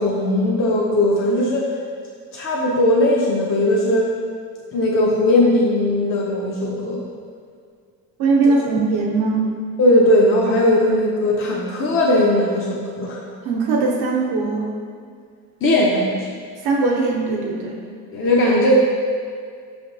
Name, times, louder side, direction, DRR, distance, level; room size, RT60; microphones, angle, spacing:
voice 1, 0.0-1.7 2.3-4.1 4.7-7.0 9.8-13.2 15.6-16.3 18.1-18.8, left 1 dB, 35° left, -4 dB, 0.6 m, -18 dB
voice 2, 8.2-9.6 13.4-14.7 16.6-17.8, right 3 dB, 75° right, -1 dB, 0.9 m, -20 dB
5.2 x 3.3 x 2.6 m, 2.1 s
cardioid pair, 95°, 38 cm